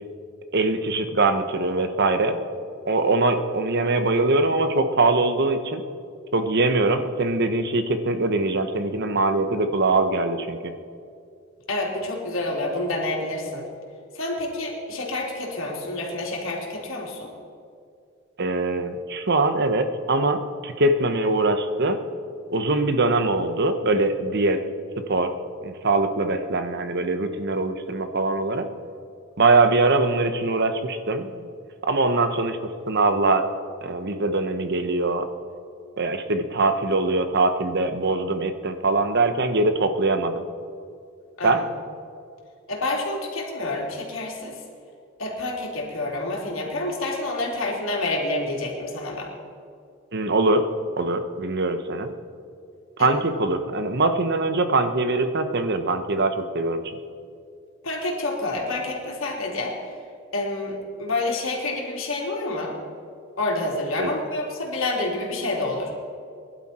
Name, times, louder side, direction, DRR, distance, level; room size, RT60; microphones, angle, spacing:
voice 1, 0.5-2.4 2.9-5.8 6.3-10.7 18.4-22.0 22.5-24.6 25.1-25.3 25.6-28.7 29.4-31.4 31.9-32.6 32.9-33.4 33.8-35.2 36.0-40.4 41.4-41.6 50.1-50.7 51.0-52.1 53.0-56.8 64.0-64.1, right 2 dB, 55° right, 8 dB, 1.1 m, -22 dB
voice 2, 11.7-13.7 14.1-17.3 41.4-41.6 42.7-44.6 45.2-49.3 53.0-53.1 57.8-60.0 60.3-62.8 63.4-65.9, left 2 dB, 75° left, -1 dB, 3.2 m, -28 dB
22.0 x 11.5 x 4.4 m, 2.4 s
head